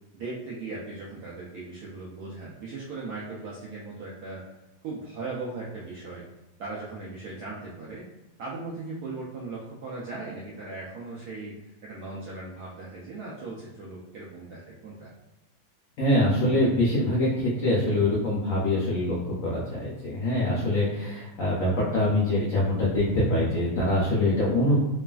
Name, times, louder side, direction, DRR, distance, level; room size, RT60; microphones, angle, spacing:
voice 1, 0.1-4.4 4.8-6.2 6.6-8.1 8.4-11.6 11.8-15.1, right 3 dB, 80° right, -6 dB, 0.8 m, -38 dB
voice 2, 16.0-24.8, left 1 dB, 80° left, -5 dB, 0.7 m, -24 dB
3.1 x 2.4 x 2.3 m, 1.0 s
omnidirectional pair, 2.2 m